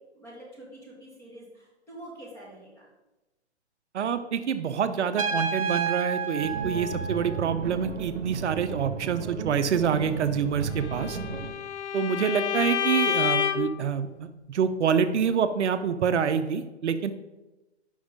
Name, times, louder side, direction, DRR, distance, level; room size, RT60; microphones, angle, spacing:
voice 1, 0.1-2.9 11.0-11.4, right 1 dB, 10° left, -5 dB, 1.6 m, -46 dB
voice 2, 3.9-11.2 11.9-17.1, right 7 dB, 80° right, 11 dB, 0.6 m, -26 dB
Trumpet, 5.2-7.8, right 5 dB, 30° right, 0.4 m, -30 dB
sound 1, 6.4-11.5, right 5 dB, 60° right, 1.0 m, -35 dB
Bowed string instrument, 10.8-13.8, left 8 dB, 80° left, 0.6 m, -28 dB
5.4 x 5.2 x 5.1 m, 1.0 s
hypercardioid pair, 155°, 34 cm